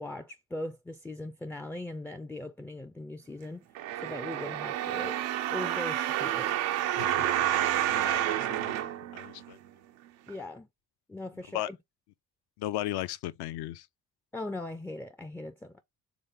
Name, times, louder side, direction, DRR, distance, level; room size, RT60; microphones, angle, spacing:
voice 1, 0.0-3.6 4.0-5.2 5.5-6.5 10.3-10.7 11.1-11.8 14.3-15.8, left 1 dB, 5° left, 0.3 m, -39 dB
sound 1, 3.7-9.7 10.3-10.4, right 12 dB, 85° right, 0.6 m, -29 dB
voice 2, 7.0-9.6 11.5-11.7 12.6-13.9, left 14 dB, 65° left, 0.5 m, -37 dB
4.1 x 3.3 x 3.6 m
hypercardioid pair, 50°, 43 cm